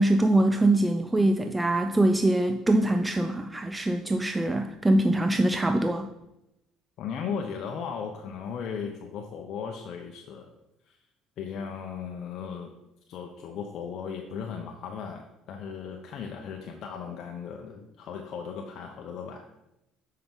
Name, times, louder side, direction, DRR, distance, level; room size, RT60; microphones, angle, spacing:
voice 1, 0.0-6.1, right 1 dB, 15° right, 7 dB, 0.5 m, -23 dB
voice 2, 7.0-10.5 10.9-11.0 11.4-12.7 13.1-19.4, left 6 dB, 60° left, 3 dB, 0.7 m, -36 dB
7.7 x 5.5 x 3.7 m, 0.90 s
supercardioid pair, 75°, 0 cm